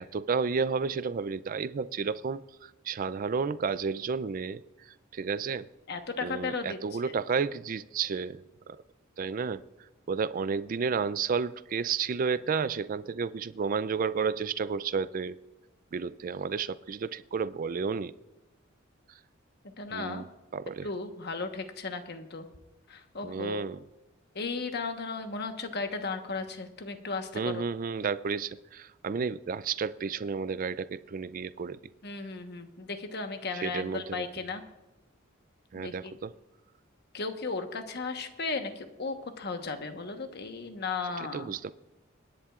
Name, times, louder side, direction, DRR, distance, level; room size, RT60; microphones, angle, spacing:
voice 1, 0.0-4.6 5.1-5.7 6.2-8.4 8.7-8.8 9.2-9.6 10.1-15.4 15.9-18.1 19.9-20.3 20.5-20.9 23.2-23.8 27.3-31.8 33.5-34.3 35.7-36.3 41.2-41.7, right 5 dB, 45° right, 16 dB, 0.4 m, -31 dB
voice 2, 5.9-6.8 7.1-7.2 19.8-20.2 20.8-22.5 22.9-23.6 24.3-27.6 32.0-34.6 35.7-36.1 37.1-41.5, left 4 dB, 55° left, 6 dB, 1.2 m, -35 dB
26.0 x 10.5 x 2.4 m, 1.1 s
head